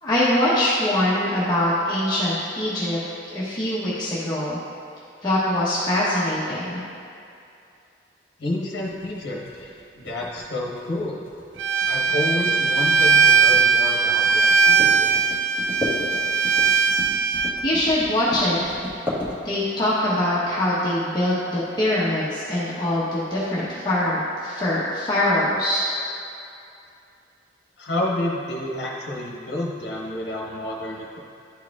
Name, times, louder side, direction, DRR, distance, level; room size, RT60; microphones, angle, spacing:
voice 1, 0.0-3.0 3.3-4.6 5.2-6.8 17.6-18.6 19.4-25.8, left 1 dB, 25° left, -9 dB, 0.9 m, -23 dB
voice 2, 8.4-11.2 11.9-15.1 27.8-31.2, left 1 dB, 60° left, -3 dB, 1.0 m, -29 dB
sound 1, 8.8-19.9, left 1 dB, 10° right, 1.4 m, -34 dB
Bowed string instrument, 11.6-17.5, right 5 dB, 75° right, 0.3 m, -19 dB
11.5 x 4.6 x 2.4 m, 2.6 s
head